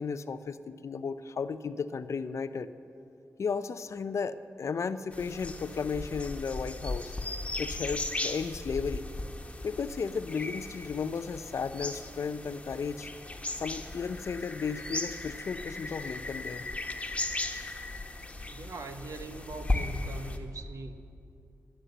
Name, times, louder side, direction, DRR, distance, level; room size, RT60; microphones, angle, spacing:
voice 1, 0.0-2.7 3.4-7.1 7.6-9.1 9.6-13.1 13.6-16.7, left 5 dB, 60° left, 12 dB, 0.5 m, -34 dB
sound 1, 5.1-20.4, left 2 dB, 20° left, 1.3 m, -37 dB
voice 2, 18.4-20.9, right 3 dB, 70° right, 8 dB, 0.9 m, -42 dB
12.5 x 9.7 x 7.8 m, 2.6 s
cardioid pair, 50°, 6 cm